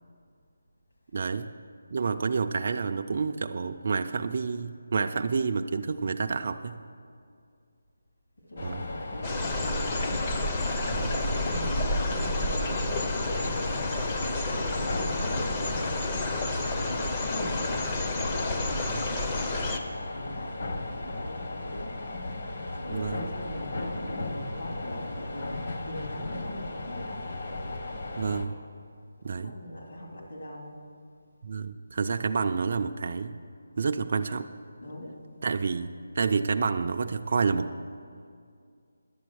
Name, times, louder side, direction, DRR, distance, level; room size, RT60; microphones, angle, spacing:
voice 1, 1.1-1.5 1.9-6.8 8.6-8.8 10.9-11.1 18.9-19.1 22.9-23.3 28.2-28.6 29.2-29.5 31.4-33.4 33.8-34.5 35.4-37.7, right 5 dB, 40° right, 6 dB, 0.3 m, -29 dB
voice 2, 8.4-10.3 11.1-14.1 14.7-16.4 17.2-17.6 18.1-18.6 20.1-21.9 22.8-27.0 29.3-30.7 34.8-35.1, left 1 dB, 70° left, -2 dB, 3.0 m, -41 dB
sound 1, 8.6-28.5, left 2 dB, 45° left, 1.0 m, -36 dB
sound 2, 9.2-19.8, left 2 dB, 20° left, 0.5 m, -30 dB
11.0 x 8.3 x 6.3 m, 2.3 s
figure-of-eight pair, 175°, 0 cm